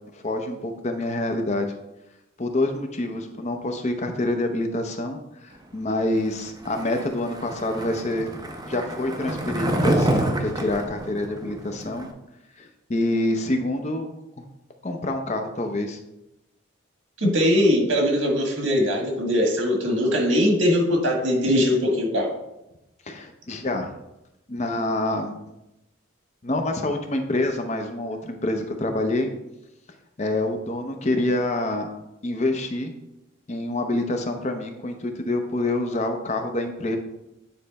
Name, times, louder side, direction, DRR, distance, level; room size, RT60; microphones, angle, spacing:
voice 1, 0.1-1.7 2.4-8.3 8.7-12.1 12.6-14.1 14.8-16.0 23.1-23.9 24.5-25.5 26.4-29.3 30.2-31.9 32.2-32.9 33.5-37.0, left 2 dB, 35° left, 5 dB, 0.7 m, -27 dB
Skateboard, 6.6-12.1, right 1 dB, 20° right, 0.6 m, -27 dB
voice 2, 17.2-22.3, left 1 dB, 75° right, 1 dB, 1.7 m, -21 dB
9.0 x 3.2 x 4.1 m, 0.91 s
head